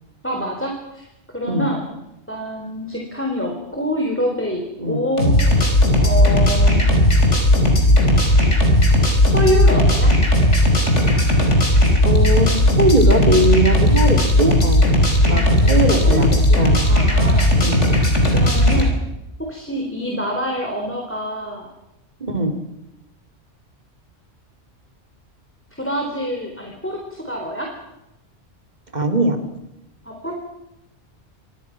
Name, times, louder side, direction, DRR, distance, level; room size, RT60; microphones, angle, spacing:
voice 1, 0.2-1.1 1.3-1.9 2.3-5.6 6.0-7.0 9.2-10.1 15.3-17.5 18.3-19.0 19.5-21.7 25.8-27.0 27.2-27.7 30.1-30.3, equal, 10° left, 0 dB, 4.0 m, -26 dB
sound 1, 5.2-18.9, left 1 dB, 85° left, 5.5 m, -15 dB
voice 2, 12.0-14.9 15.2-16.3 16.6-16.8 17.6-17.8 22.2-22.5 28.9-29.4, right 1 dB, 40° right, 5 dB, 3.4 m, -20 dB
27.5 x 23.0 x 6.1 m, 0.89 s
omnidirectional pair, 1.2 m